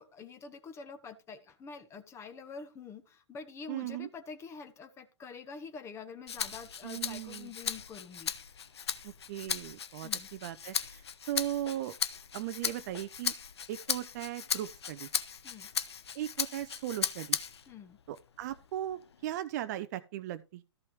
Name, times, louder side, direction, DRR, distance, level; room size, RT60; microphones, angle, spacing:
voice 1, 0.0-8.3 10.0-10.3 15.4-15.7 17.7-18.0, left 5 dB, 15° left, 1.3 m, -46 dB
voice 2, 3.7-4.1 6.8-7.5 9.0-11.0 11.3-11.9 12.3-13.3 13.7-15.1 16.1-17.4 18.1-20.6, right 13 dB, 35° right, 0.6 m, -38 dB
Rattle (instrument), 6.3-17.7 18.2-19.4, left 7 dB, 65° left, 0.9 m, -37 dB
14.0 x 5.4 x 4.7 m
figure-of-eight pair, 115°, 15 cm